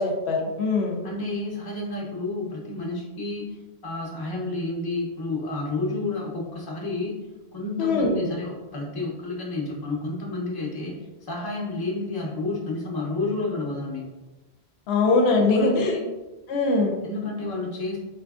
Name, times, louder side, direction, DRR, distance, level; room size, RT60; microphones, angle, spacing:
voice 1, 0.0-1.0 7.8-8.2 14.9-15.9 16.5-17.0, left 3 dB, 75° left, 1 dB, 0.8 m, -22 dB
voice 2, 1.0-7.2 7.5-14.0 15.4-16.1 16.8-18.0, left 2 dB, 25° left, -3 dB, 0.6 m, -30 dB
4.0 x 2.5 x 2.3 m, 1.1 s
omnidirectional pair, 1.1 m